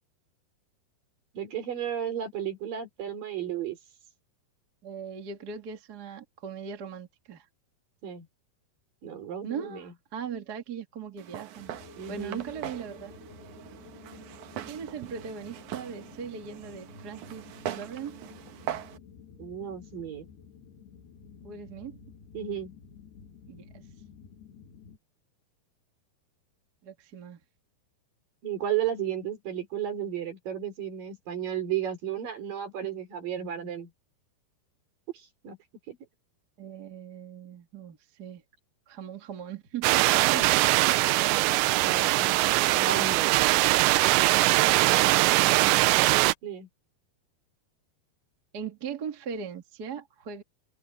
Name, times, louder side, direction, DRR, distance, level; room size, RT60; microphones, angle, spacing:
voice 1, 1.3-3.8 8.0-8.3 9.0-9.9 12.0-12.4 19.4-20.3 22.3-22.7 28.4-33.9 35.1-35.6 35.9-36.0 40.3-40.5 41.8-43.4 46.4-46.7, right 9 dB, 55° right, 5.0 m, -33 dB
voice 2, 4.8-7.4 9.4-11.7 12.1-13.1 14.6-18.2 21.4-22.0 23.5-23.8 26.8-27.4 36.6-38.4 38.9-40.4 44.6-45.8 48.5-50.4, right 7 dB, 40° right, 1.5 m, -39 dB
Walk footsteps, 11.2-19.0, right 11 dB, 70° right, 1.9 m, -41 dB
sound 1, 11.5-25.0, left 6 dB, 70° left, 4.2 m, -51 dB
sound 2, 39.8-46.3, right 19 dB, 85° right, 2.9 m, -22 dB
omnidirectional pair, 5.0 m